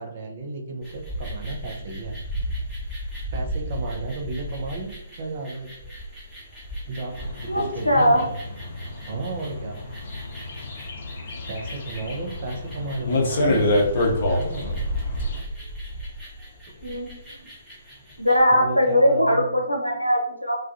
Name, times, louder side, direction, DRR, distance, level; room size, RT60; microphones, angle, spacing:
voice 1, 0.0-2.2 3.3-5.7 6.9-8.3 9.1-9.8 11.5-14.7 18.5-19.5, right 3 dB, 40° right, 3 dB, 0.5 m, -33 dB
sound 1, 0.8-18.5, equal, ahead, 0.8 m, -35 dB
sound 2, 7.1-15.4, left 1 dB, 45° left, 0.6 m, -27 dB
voice 2, 7.5-8.2 16.8-17.1 18.2-20.6, equal, 90° left, 1 dB, 0.6 m, -20 dB
2.3 x 2.2 x 2.5 m, 0.76 s
figure-of-eight pair, 130°, 0 cm